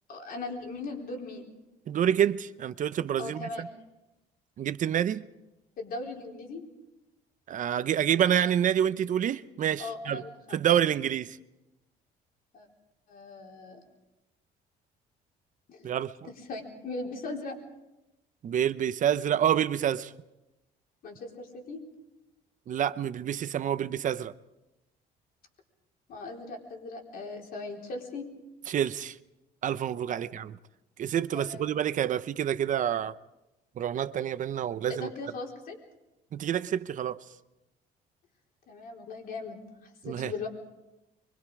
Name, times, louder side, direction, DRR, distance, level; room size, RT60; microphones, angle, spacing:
voice 1, 0.1-1.5 3.2-3.7 5.8-6.6 9.8-10.6 12.5-12.7 13.1-13.8 15.7-15.9 16.2-17.6 21.0-21.8 26.1-28.3 30.1-30.2 31.3-31.6 34.9-35.8 38.7-40.5, left 3 dB, 60° left, 4.1 m, -39 dB
voice 2, 1.9-3.7 4.6-5.2 7.5-10.2 10.5-11.4 15.8-16.1 18.4-20.1 22.7-24.3 28.7-29.2 29.6-30.6 31.0-33.2 33.8-35.1 36.3-37.2 40.0-40.3, right 10 dB, 50° right, 0.8 m, -28 dB
24.5 x 23.5 x 4.9 m
cardioid pair, 110°, 17 cm